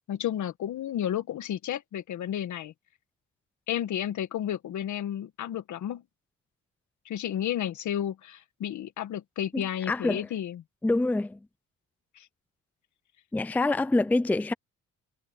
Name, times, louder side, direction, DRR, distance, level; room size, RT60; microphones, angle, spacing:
voice 1, 0.1-2.7 3.7-6.0 7.1-10.6 12.2-12.3, left 10 dB, 70° left, 1.8 m, -32 dB
voice 2, 9.5-10.2 10.8-11.4 13.3-14.5, left 2 dB, 5° left, 0.5 m, -26 dB
cardioid pair, 90°, 30 cm